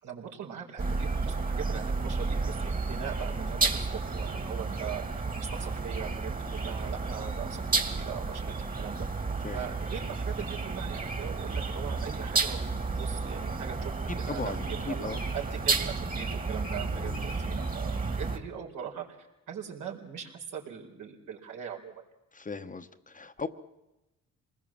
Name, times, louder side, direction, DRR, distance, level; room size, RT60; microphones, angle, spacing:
voice 1, 0.0-15.1 15.3-21.9, right 8 dB, 75° right, 1 dB, 4.5 m, -41 dB
sound 1, 0.8-18.4, right 3 dB, 30° right, 2.3 m, -32 dB
voice 2, 14.1-15.2 16.9-17.3 22.3-23.5, left 4 dB, 25° left, 9 dB, 1.1 m, -38 dB
26.5 x 20.5 x 7.5 m, 0.96 s
cardioid pair, 90°, 30 cm